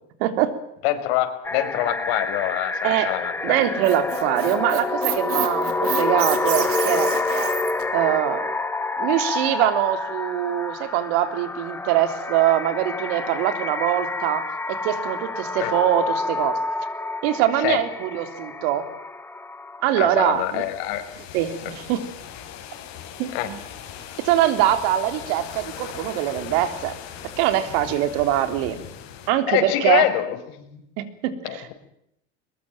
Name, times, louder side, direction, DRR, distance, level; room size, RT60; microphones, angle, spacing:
voice 1, 0.2-0.5 2.8-3.1 3.4-7.1 7.9-8.5 9.0-16.6 17.2-18.8 19.8-20.6 21.3-22.0 23.2-23.6 24.2-27.0 27.4-28.8 29.3-30.1 31.0-31.7, right 12 dB, 75° right, 10 dB, 3.5 m, -23 dB
voice 2, 0.8-3.6 15.6-15.7 17.6-17.8 20.0-21.0 23.3-23.5 29.5-30.8 31.4-31.6, left 13 dB, 85° left, 7 dB, 5.1 m, -25 dB
sound 1, 1.4-20.3, left 3 dB, 5° left, 1.1 m, -28 dB
Squeak, 3.6-7.8, right 11 dB, 45° right, 3.6 m, -29 dB
sound 2, 20.3-29.3, left 9 dB, 60° left, 7.3 m, -39 dB
23.0 x 21.5 x 9.2 m, 0.77 s
cardioid pair, 170°, 31 cm